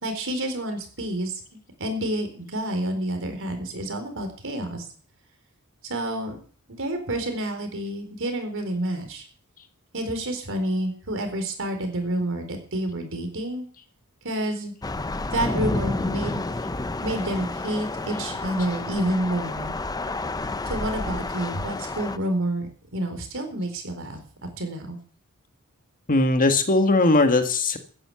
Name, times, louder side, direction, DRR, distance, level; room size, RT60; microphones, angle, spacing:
voice 1, 0.0-1.4 1.8-4.8 5.8-6.4 6.8-9.2 9.9-13.6 14.2-14.7 15.3-16.4 17.0-19.7 20.7-25.0, right 1 dB, 60° right, 6 dB, 4.2 m, -29 dB
Thunder / Rain, 14.8-22.2, left 2 dB, 15° left, 0.6 m, -30 dB
voice 2, 26.1-27.8, left 2 dB, 40° left, 7 dB, 1.7 m, -19 dB
14.5 x 10.0 x 7.1 m, 0.43 s
head